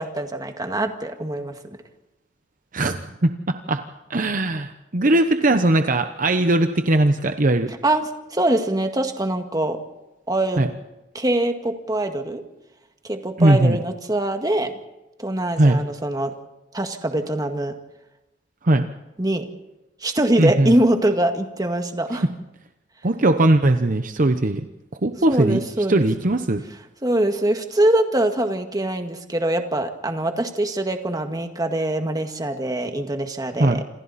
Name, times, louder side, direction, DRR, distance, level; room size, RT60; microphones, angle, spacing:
voice 1, 0.0-1.8 7.8-8.0 8.3-9.8 10.3-10.6 11.1-12.4 13.0-14.7 15.2-16.3 16.7-17.7 19.2-19.5 20.0-22.3 25.3-26.1 27.0-33.8, right 1 dB, 20° right, 5 dB, 1.9 m, -23 dB
voice 2, 4.1-7.7 10.6-10.7 13.4-13.8 15.6-15.8 18.6-18.9 20.4-20.7 23.0-24.7 25.0-25.6 25.9-26.6 33.6-33.8, right 2 dB, 45° right, 8 dB, 0.9 m, -19 dB
28.0 x 26.5 x 4.2 m, 0.97 s
head